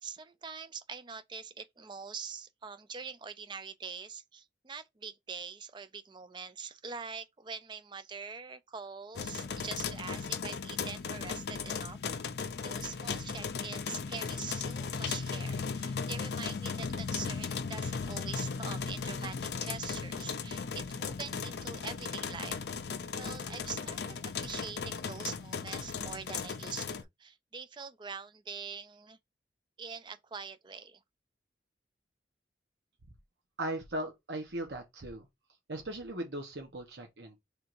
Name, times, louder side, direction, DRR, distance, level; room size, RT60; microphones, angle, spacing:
voice 1, 0.0-12.0 12.6-22.6 23.1-29.2 29.8-31.0, right 5 dB, 25° right, 0.4 m, -44 dB
sound 1, 9.2-27.0, left 5 dB, 65° left, 0.4 m, -37 dB
voice 2, 33.6-35.3 35.7-37.4, right 1 dB, 75° right, 1.0 m, -38 dB
3.5 x 2.6 x 4.4 m
head